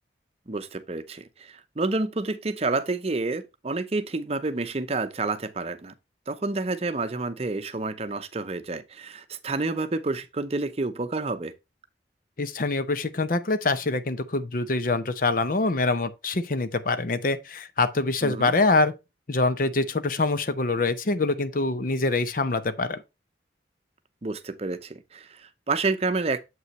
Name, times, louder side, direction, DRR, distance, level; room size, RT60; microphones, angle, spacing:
voice 1, 0.5-5.9 6.3-11.5 18.2-18.5 24.2-26.4, right 3 dB, 35° right, 0.7 m, -29 dB
voice 2, 12.4-18.9 19.3-23.0, left 3 dB, 50° left, 0.7 m, -25 dB
7.6 x 5.5 x 3.1 m
head